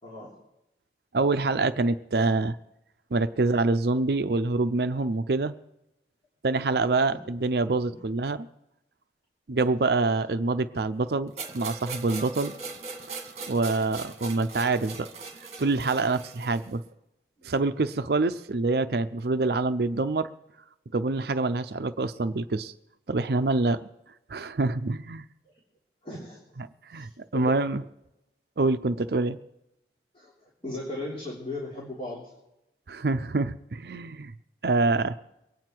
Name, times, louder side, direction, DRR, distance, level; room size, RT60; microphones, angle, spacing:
voice 1, 1.1-2.6 3.1-5.5 6.4-8.5 9.5-12.5 13.5-15.1 15.6-16.8 17.4-20.3 20.9-22.7 23.1-23.8 24.3-25.2 26.6-27.8 28.6-29.4 32.9-34.3 34.6-35.1, right 3 dB, 60° right, 11 dB, 0.6 m, -26 dB
sound 1, 11.4-16.7, right 4 dB, 35° right, 1.7 m, -40 dB
voice 2, 26.0-26.4 26.9-27.5 28.8-28.9 30.1-32.2, left 2 dB, 30° left, -5 dB, 3.2 m, -37 dB
23.5 x 9.4 x 4.5 m, 0.88 s
head